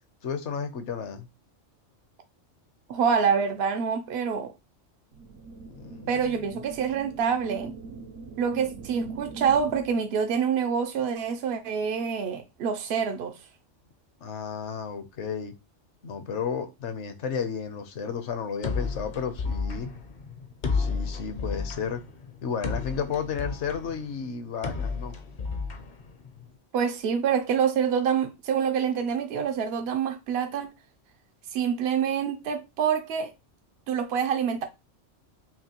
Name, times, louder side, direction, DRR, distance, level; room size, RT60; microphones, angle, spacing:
voice 1, 0.2-1.3 5.6-6.4 14.2-15.5 16.0-19.9 20.7-22.0 22.4-25.2, left 6 dB, 70° left, 1.1 m, -33 dB
voice 2, 2.9-4.5 6.1-7.7 8.4-13.4 26.7-30.7 31.5-33.3 33.9-34.6, right 7 dB, 65° right, 0.7 m, -26 dB
sound 1, 5.1-10.1, right 3 dB, 85° right, 1.0 m, -42 dB
sound 2, 18.6-26.6, left 4 dB, 45° left, 0.7 m, -32 dB
6.0 x 2.2 x 2.9 m
omnidirectional pair, 1.3 m